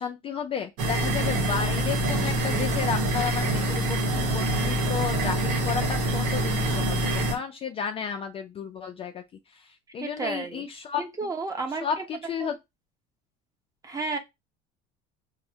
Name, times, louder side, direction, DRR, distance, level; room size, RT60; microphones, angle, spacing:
voice 1, 0.0-9.2 9.5-9.7 9.9-11.0 11.8-12.5, left 7 dB, 30° left, 0.3 m, -32 dB
sound 1, 0.8-7.3, right 1 dB, 90° right, 0.9 m, -25 dB
voice 2, 10.0-10.6 11.0-12.0 12.4-12.5 13.8-14.2, right 3 dB, 20° right, 0.7 m, -32 dB
4.6 x 2.1 x 2.7 m
cardioid pair, 125°, 19 cm